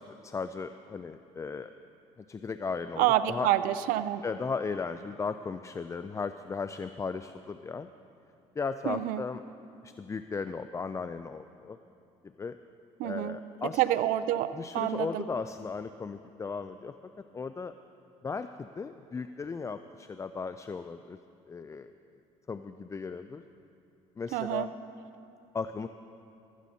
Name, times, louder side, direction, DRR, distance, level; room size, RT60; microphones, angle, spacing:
voice 1, 0.0-1.7 2.2-3.5 4.2-7.9 8.6-9.4 9.8-11.8 12.4-12.6 13.0-13.8 14.5-16.9 17.3-17.7 18.2-21.2 21.5-21.9 22.5-23.4 24.2-24.7 25.5-25.9, left 5 dB, 20° left, 10 dB, 0.3 m, -36 dB
voice 2, 3.0-4.2 8.9-9.2 13.0-13.4 13.8-15.2 24.3-24.7, right 13 dB, 80° right, 13 dB, 0.5 m, -28 dB
15.5 x 13.0 x 2.8 m, 2.6 s
supercardioid pair, 80°, 14 cm